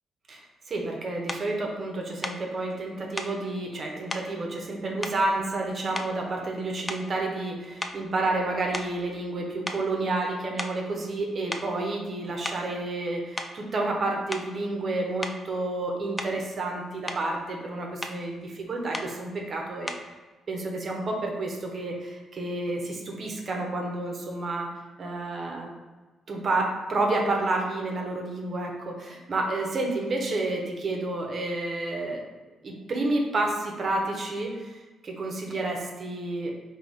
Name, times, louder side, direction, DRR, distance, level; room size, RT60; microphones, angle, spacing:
voice 1, 0.3-20.0 20.5-24.7 25.0-25.7 26.3-32.2 32.6-36.5, right 2 dB, 50° right, 0 dB, 0.9 m, -30 dB
sound 1, 1.3-1.5 2.2-2.5 3.2-3.4 4.1-4.3 5.0-5.6 5.9-6.3 6.8-7.2 7.8-9.4 9.7-9.9 10.6-10.9 11.5-11.7 12.3-12.7 13.4-13.6 14.3-14.6 15.2-15.4 16.2-16.5 16.8-17.3 18.0-18.2 18.9-19.2 19.9-20.1, left 2 dB, 25° left, 0.4 m, -36 dB
3.9 x 2.9 x 3.4 m, 1.3 s
hypercardioid pair, 45°, 0 cm